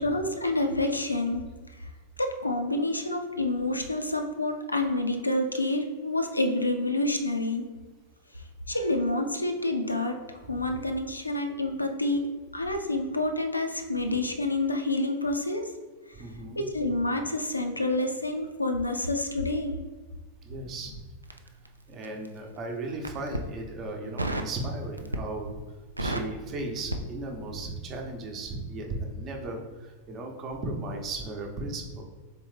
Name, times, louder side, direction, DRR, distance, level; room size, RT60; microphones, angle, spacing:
voice 1, 0.0-1.4 1.8-1.9 2.2-7.7 8.7-12.2 12.5-15.7 16.6-19.8, left 2 dB, 85° left, 5 dB, 0.4 m, -28 dB
voice 2, 16.1-16.7 20.4-21.0 21.9-25.6 26.0-32.0, right 2 dB, 30° right, 2 dB, 0.8 m, -36 dB
Crackle, 21.2-22.4 22.9-23.5 24.2-24.6 25.0-25.4 25.7-27.7 27.9-28.1, right 1 dB, 85° right, 0.3 m, -33 dB
4.0 x 3.5 x 3.2 m, 1.3 s
figure-of-eight pair, 90°, 0 cm